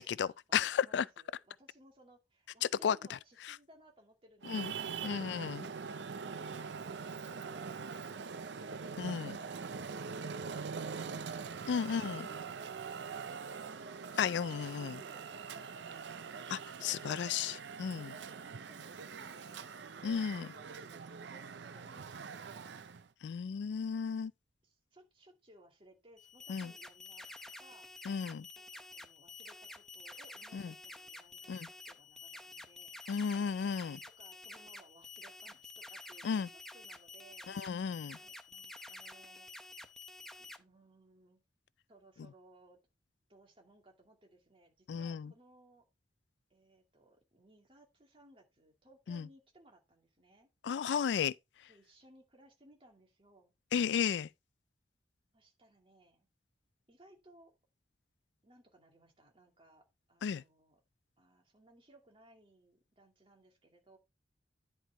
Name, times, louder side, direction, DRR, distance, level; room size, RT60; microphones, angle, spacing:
voice 1, 0.0-1.0 2.8-3.2 4.5-4.7 5.0-5.7 9.0-9.4 11.7-12.3 14.2-15.0 16.5-18.1 20.0-20.5 23.2-24.3 26.5-26.7 28.1-28.5 30.5-30.7 31.5-31.7 33.1-34.0 36.2-36.5 37.5-38.2 44.9-45.3 49.1-49.3 50.6-51.3 53.7-54.3 60.2-60.4, left 7 dB, 80° left, 0.3 m, -34 dB
voice 2, 0.6-5.1 14.7-16.4 16.8-17.6 18.1-22.8 24.0-24.3 24.6-27.9 28.6-33.0 33.9-37.4 38.1-39.5 40.4-41.4 41.9-42.8 43.3-45.8 46.5-50.5 51.7-53.5 55.3-56.3 56.9-57.5 58.4-60.8 61.2-64.0, right 1 dB, 30° right, 2.3 m, -63 dB
Traffic noise roadway noise, 4.4-23.1, right 5 dB, 85° right, 0.6 m, -43 dB
sound 1, 26.2-40.6, left 2 dB, 5° left, 0.7 m, -50 dB
10.5 x 4.5 x 4.5 m
head